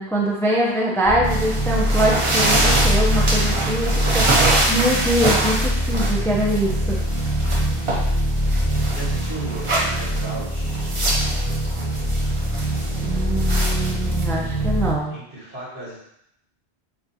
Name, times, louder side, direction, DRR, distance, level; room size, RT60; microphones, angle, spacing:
voice 1, 0.0-7.0 13.0-15.2, right 1 dB, 5° left, -3 dB, 0.5 m, -23 dB
sound 1, 1.0-15.0, equal, 25° left, 1.0 m, -23 dB
sound 2, 1.2-14.9, right 2 dB, 35° right, 0.7 m, -25 dB
voice 2, 8.6-10.8 15.1-16.0, right 2 dB, 70° right, -7 dB, 1.9 m, -36 dB
7.1 x 2.5 x 2.8 m, 0.74 s
omnidirectional pair, 1.1 m